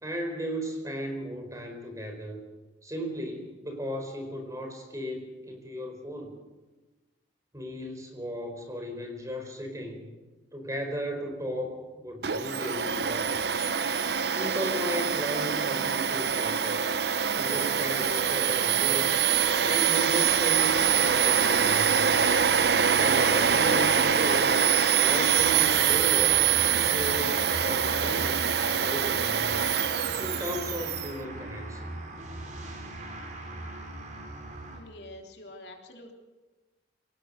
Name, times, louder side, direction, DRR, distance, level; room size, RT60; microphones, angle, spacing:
voice 1, 0.0-2.4 2.8-6.3 7.5-10.1 10.5-13.8 14.4-16.8 17.3-19.1 19.6-22.4 22.9-24.5 24.9-26.4 26.7-28.5 28.8-29.7 30.2-31.9, equal, 20° right, 4 dB, 4.6 m, -36 dB
Domestic sounds home sounds, 12.2-31.1, right 7 dB, 65° right, 0.8 m, -24 dB
sound 1, 25.3-34.8, right 2 dB, 45° right, 5.3 m, -39 dB
voice 2, 34.7-36.1, left 1 dB, 70° left, 2 dB, 3.3 m, -46 dB
25.0 x 18.5 x 6.6 m, 1.2 s
head